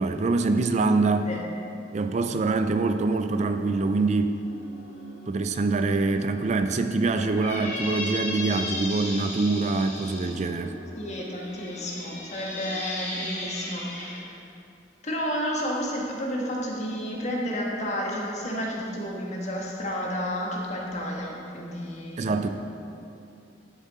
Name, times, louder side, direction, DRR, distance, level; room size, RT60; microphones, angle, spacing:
voice 1, 0.0-1.3 1.9-4.4 5.3-10.7 22.2-22.5, right 3 dB, 40° right, 8 dB, 0.4 m, -24 dB
sound 1, 4.4-12.8, left 1 dB, 90° left, 2.3 m, -46 dB
Squeak, 7.2-10.3 11.1-14.2, left 2 dB, 15° left, 2.3 m, -35 dB
voice 2, 11.0-14.4 15.0-22.3, equal, 40° left, -2 dB, 1.6 m, -31 dB
11.0 x 7.2 x 4.2 m, 2.7 s
head